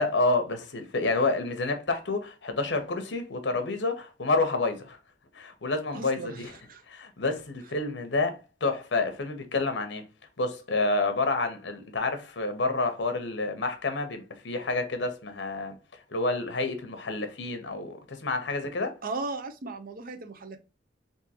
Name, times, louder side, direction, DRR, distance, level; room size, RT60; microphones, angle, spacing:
voice 1, 0.0-5.0 5.3-6.5 6.9-10.0 10.4-15.8 16.1-19.0, left 3 dB, 70° left, 0.8 m, -29 dB
voice 2, 5.9-6.8 19.0-20.6, right 3 dB, 50° right, 0.6 m, -37 dB
3.6 x 2.7 x 2.8 m
head